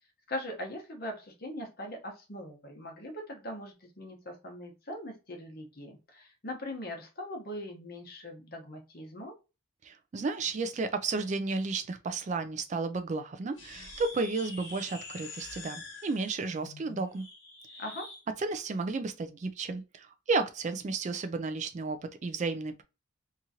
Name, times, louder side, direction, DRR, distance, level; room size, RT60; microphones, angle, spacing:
voice 1, 0.3-9.3 17.8-18.1, left 1 dB, 45° left, 1.0 m, -41 dB
voice 2, 9.8-17.2 18.4-22.8, right 3 dB, 35° right, 0.3 m, -33 dB
sound 1, 13.5-18.2, left 3 dB, 65° left, 1.3 m, -46 dB
2.9 x 2.4 x 2.7 m
head